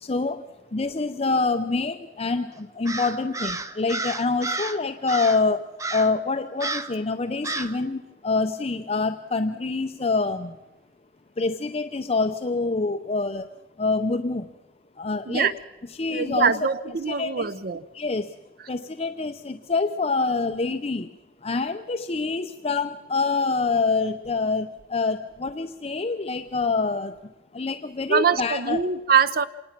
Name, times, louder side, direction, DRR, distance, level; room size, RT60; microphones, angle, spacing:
voice 1, 0.0-0.4 0.7-10.6 11.4-13.5 13.8-14.5 15.0-15.5 16.0-16.6 17.1-17.5 17.9-18.3 18.7-21.1 21.4-27.1 27.5-28.8, left 3 dB, 35° left, 7 dB, 0.7 m, -26 dB
Crow, 2.9-4.8 5.1-5.5 5.8-6.2 6.6-7.0 7.4-7.8, right 3 dB, 20° right, 0.9 m, -31 dB
voice 2, 16.1-17.8 28.1-29.5, right 6 dB, 55° right, 16 dB, 0.6 m, -23 dB
26.5 x 19.5 x 5.9 m, 1.1 s
head